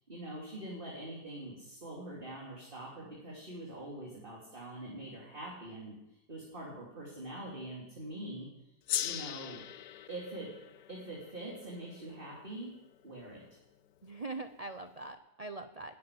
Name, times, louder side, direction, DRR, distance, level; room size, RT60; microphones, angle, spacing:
voice 1, 0.0-6.0 6.3-8.5 9.0-9.6 10.1-10.5 10.9-12.7 13.0-13.4, right 1 dB, 30° right, -4 dB, 3.3 m, -44 dB
Gong, 8.9-13.6, left 12 dB, 70° left, 1.2 m, -41 dB
voice 2, 14.0-16.0, right 3 dB, 60° right, 9 dB, 0.3 m, -42 dB
13.0 x 8.7 x 10.0 m, 0.89 s
omnidirectional pair, 1.9 m